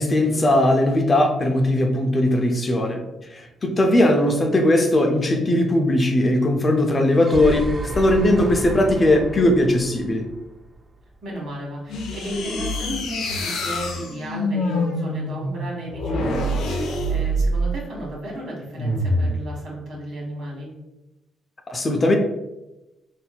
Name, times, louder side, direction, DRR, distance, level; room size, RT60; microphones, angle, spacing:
voice 1, 0.0-3.0 3.3-7.7 7.9-10.2 21.7-22.2, left 1 dB, 30° left, 4 dB, 0.5 m, -19 dB
sound 1, 7.2-11.1, right 2 dB, 30° right, 0.4 m, -32 dB
voice 2, 11.2-20.7, right 1 dB, 70° right, -3 dB, 1.4 m, -34 dB
sound 2, 11.9-17.8 18.7-19.4, equal, 80° left, 0.5 m, -25 dB
4.1 x 2.6 x 2.2 m, 0.98 s
cardioid pair, 90°, 0 cm